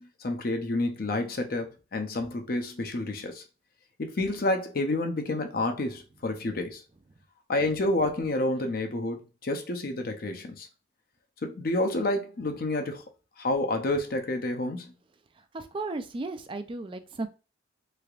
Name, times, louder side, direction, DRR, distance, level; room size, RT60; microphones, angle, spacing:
voice 1, 0.0-3.4 4.0-6.8 7.5-10.7 11.4-13.0 13.4-14.9, left 2 dB, 50° left, 0.6 m, -29 dB
voice 2, 15.5-17.3, right 3 dB, 25° right, 0.4 m, -34 dB
3.4 x 3.3 x 2.4 m
head